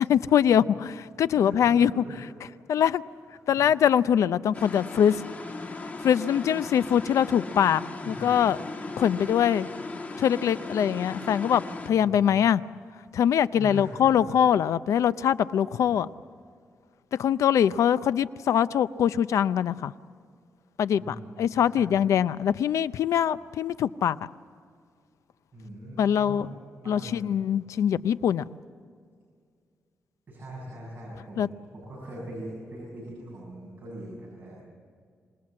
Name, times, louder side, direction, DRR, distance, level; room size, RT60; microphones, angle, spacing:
voice 1, 0.0-2.0 2.7-3.0 3.5-5.2 6.0-8.6 9.0-9.7 10.2-12.6 13.1-16.1 17.2-19.9 20.8-24.2 26.0-26.5 26.9-28.4 31.4-31.5, left 9 dB, 85° left, 15 dB, 0.5 m, -23 dB
voice 2, 1.3-1.8 2.0-2.2 3.5-3.7 8.0-8.3 9.1-9.2 11.1-11.2 11.9-12.4 13.6-14.3 20.9-22.0 25.5-26.5 26.8-27.3 30.3-34.6, right 1 dB, 35° right, -5 dB, 7.5 m, -42 dB
sound 1, 4.5-11.9, left 3 dB, 30° left, 1.7 m, -37 dB
26.5 x 19.5 x 7.6 m, 2.1 s
wide cardioid pair, 145°, 5 cm